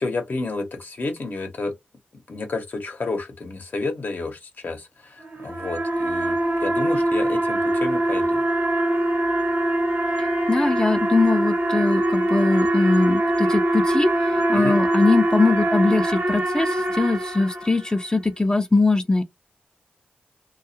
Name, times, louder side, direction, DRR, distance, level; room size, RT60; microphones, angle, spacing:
voice 1, 0.0-1.7 2.1-8.5 14.5-14.8, left 3 dB, 60° left, 0.8 m, -30 dB
sound 1, 5.2-18.0, right 1 dB, 70° right, 1.0 m, -23 dB
voice 2, 10.5-19.2, left 3 dB, 20° left, 0.5 m, -21 dB
2.3 x 2.0 x 2.7 m
cardioid pair, 55°, 4 cm